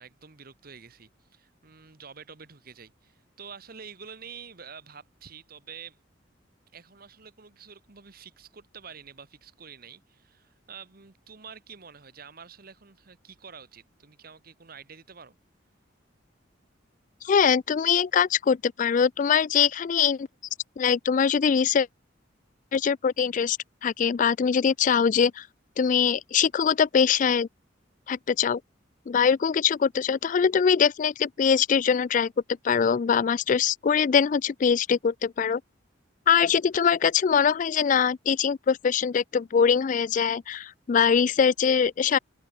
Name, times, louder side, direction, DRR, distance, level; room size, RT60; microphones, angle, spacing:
voice 1, 0.0-6.0 6.7-15.4, right 6 dB, 50° right, 1.3 m, -47 dB
voice 2, 17.2-20.3 20.8-21.9 22.7-23.6 23.8-25.5 25.8-27.5 28.1-28.6 29.1-32.3 32.6-35.6 36.3-42.2, left 7 dB, 40° left, 0.3 m, -22 dB
head